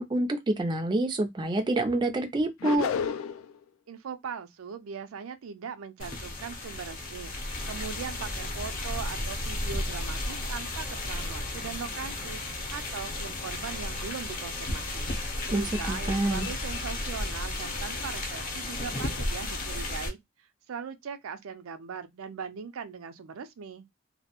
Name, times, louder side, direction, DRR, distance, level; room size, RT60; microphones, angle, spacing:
voice 1, 0.0-2.9 15.5-16.5, right 2 dB, 20° right, 0.3 m, -27 dB
sound 1, 2.6-3.5, left 6 dB, 75° left, 0.3 m, -30 dB
voice 2, 3.9-7.3 7.7-12.4 12.7-15.1 15.4-20.2 20.7-23.8, right 6 dB, 85° right, 0.4 m, -40 dB
sound 2, 6.0-20.1, left 2 dB, 40° left, 0.7 m, -34 dB
2.3 x 2.0 x 2.8 m
head